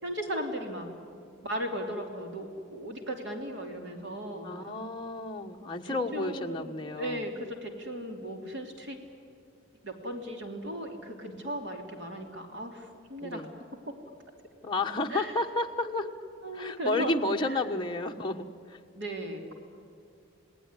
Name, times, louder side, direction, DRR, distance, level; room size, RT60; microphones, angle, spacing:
voice 1, 0.0-0.9 1.4-4.5 5.6-9.0 9.8-13.5 15.1-16.1 16.4-17.1 17.4-17.7 18.9-19.5, right 1 dB, 60° right, 3 dB, 3.2 m, -37 dB
voice 2, 4.4-7.3 13.2-13.5 14.6-16.1 16.5-18.8, left 2 dB, 25° left, 2 dB, 1.3 m, -31 dB
29.0 x 19.0 x 9.9 m, 2.6 s
head